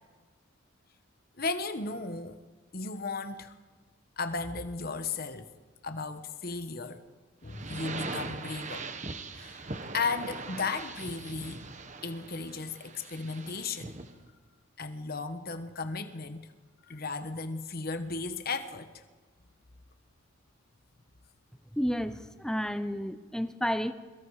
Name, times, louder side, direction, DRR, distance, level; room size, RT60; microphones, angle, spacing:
voice 1, 1.4-2.4 2.7-3.5 4.2-5.5 5.8-7.0 7.4-8.9 9.4-9.6 9.9-11.6 12.0-13.9 14.8-16.4 16.9-18.9, left 4 dB, 45° left, 1.2 m, -35 dB
sound 1, 7.5-14.2, right 3 dB, 35° right, 1.4 m, -41 dB
voice 2, 21.7-23.9, equal, 5° left, 0.8 m, -31 dB
30.0 x 22.5 x 4.9 m
head